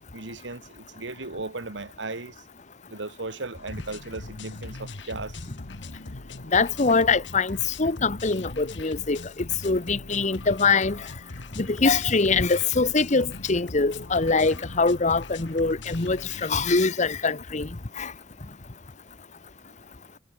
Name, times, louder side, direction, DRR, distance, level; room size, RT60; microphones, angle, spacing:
voice 1, 0.1-2.5 2.9-5.4, right 3 dB, 75° right, 1.9 m, -36 dB
sound 1, 3.5-16.9, left 2 dB, 70° left, 1.5 m, -41 dB
voice 2, 6.5-9.2 9.6-11.0 11.6-17.7 18.0-18.1, left 4 dB, 40° left, 1.0 m, -23 dB
head